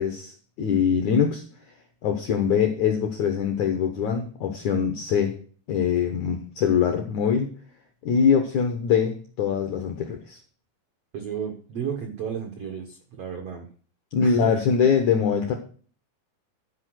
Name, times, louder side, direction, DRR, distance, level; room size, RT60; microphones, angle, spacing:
voice 1, 0.0-1.4 2.0-5.3 5.7-7.5 8.0-10.4 14.1-15.5, left 7 dB, 75° left, 5 dB, 1.7 m, -23 dB
voice 2, 11.1-13.7 14.2-14.6, right 8 dB, 80° right, 4 dB, 1.3 m, -33 dB
12.0 x 5.0 x 6.3 m, 0.42 s
omnidirectional pair, 4.8 m